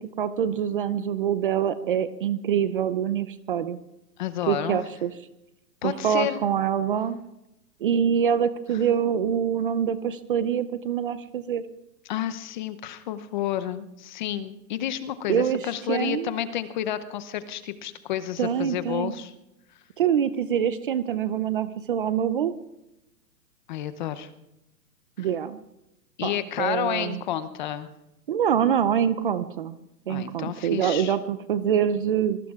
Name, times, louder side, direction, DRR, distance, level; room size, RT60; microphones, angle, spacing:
voice 1, 0.2-3.8 4.5-5.1 5.8-7.2 7.8-11.6 15.3-16.3 18.4-19.1 20.0-22.5 25.2-25.6 26.2-26.3 26.6-27.2 28.3-29.8 30.1-32.4, right 8 dB, 35° right, 13 dB, 0.5 m, -25 dB
voice 2, 4.2-4.8 5.8-6.4 12.1-19.3 23.7-24.3 25.2-25.3 26.2-27.9 30.1-31.2, left 11 dB, 30° left, 12 dB, 0.7 m, -30 dB
25.0 x 21.5 x 2.4 m, 0.91 s
hypercardioid pair, 140°, 49 cm